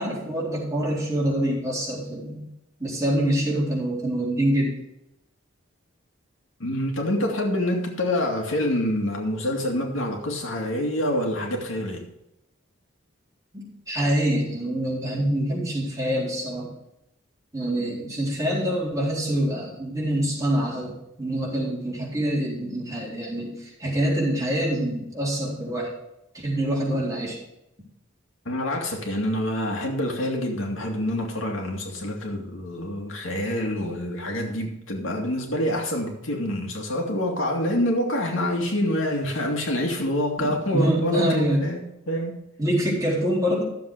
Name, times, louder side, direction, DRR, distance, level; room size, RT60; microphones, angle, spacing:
voice 1, 0.0-2.5 2.8-4.7 13.5-16.7 17.5-25.9 26.3-27.4 40.4-41.6 42.6-43.6, right 1 dB, 15° right, 4.0 m, -25 dB
voice 2, 6.6-12.1 28.5-42.5, left 1 dB, 85° left, 2.3 m, -26 dB
13.0 x 7.5 x 4.9 m
head